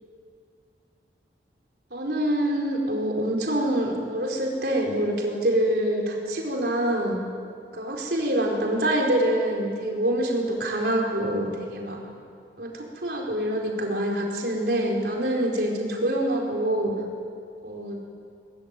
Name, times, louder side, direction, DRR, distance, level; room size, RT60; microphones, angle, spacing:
voice 1, 1.9-7.2 7.7-12.0 12.6-16.9 17.6-18.0, right 1 dB, 65° right, -1 dB, 4.7 m, -25 dB
21.5 x 21.0 x 9.2 m, 2.3 s
head